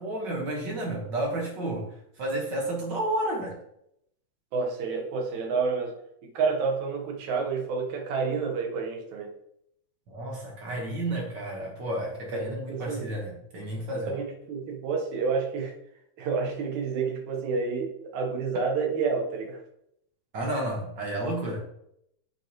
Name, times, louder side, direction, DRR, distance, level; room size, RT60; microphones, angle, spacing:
voice 1, 0.0-3.6 10.1-14.1 20.3-21.6, right 1 dB, 50° right, 0 dB, 1.5 m, -31 dB
voice 2, 4.5-5.9 6.2-9.3 12.3-13.1 14.1-15.7 16.2-19.6, right 5 dB, 80° right, 2 dB, 2.5 m, -29 dB
8.3 x 5.4 x 2.9 m, 0.75 s
omnidirectional pair, 3.3 m